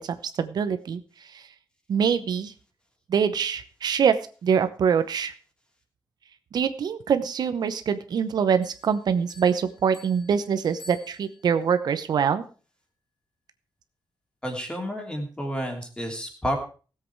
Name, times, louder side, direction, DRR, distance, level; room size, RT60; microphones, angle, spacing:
voice 1, 0.2-1.0 1.9-2.5 3.1-4.1 4.4-5.3 6.5-12.4, right 7 dB, 70° right, 11 dB, 0.9 m, -24 dB
Bell, 8.6-11.7, left 2 dB, 55° left, 4.5 m, -51 dB
voice 2, 14.4-16.6, equal, 15° left, 3 dB, 2.9 m, -30 dB
17.0 x 7.8 x 4.7 m, 0.37 s
wide cardioid pair, 160°, 7 cm